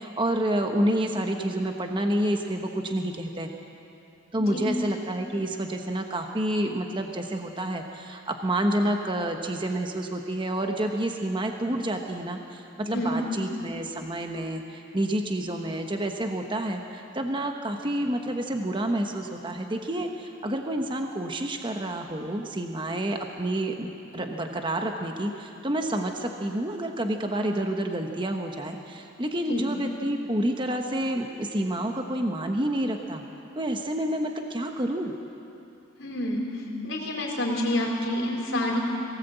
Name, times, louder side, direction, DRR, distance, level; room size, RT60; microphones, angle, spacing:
voice 1, 0.0-3.5 4.3-33.2 33.6-35.1, right 1 dB, 25° right, 3 dB, 1.1 m, -29 dB
voice 2, 4.4-4.8 12.9-13.2 29.5-29.7 36.0-36.5 36.8-38.8, left 1 dB, 65° left, -2 dB, 4.4 m, -28 dB
22.0 x 18.0 x 8.1 m, 2.7 s
head